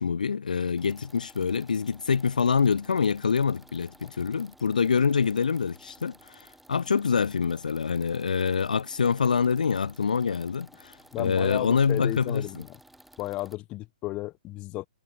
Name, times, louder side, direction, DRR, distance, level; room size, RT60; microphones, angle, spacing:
voice 1, 0.0-12.6, left 6 dB, 75° left, 0.7 m, -26 dB
sound 1, 0.8-13.6, right 1 dB, ahead, 3.2 m, -55 dB
voice 2, 11.1-12.8 13.2-14.9, left 18 dB, 25° left, 1.0 m, -34 dB
hypercardioid pair, 130°, 4 cm